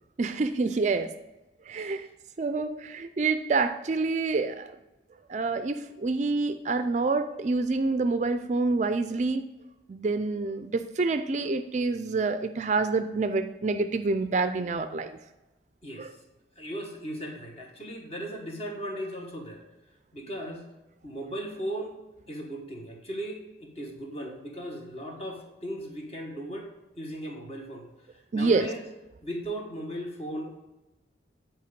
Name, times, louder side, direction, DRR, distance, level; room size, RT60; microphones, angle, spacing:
voice 1, 0.2-1.1 1.7-2.1 2.4-4.8 5.3-9.4 9.9-15.1 16.0-16.1 28.3-28.7, right 3 dB, 40° right, 10 dB, 0.4 m, -27 dB
voice 2, 15.8-16.2 16.6-19.6 20.1-20.6 21.0-22.0 22.3-26.7 27.0-27.9 28.1-28.8 29.2-30.6, right 1 dB, 35° left, 1 dB, 1.5 m, -37 dB
9.5 x 4.4 x 5.1 m, 1.0 s
head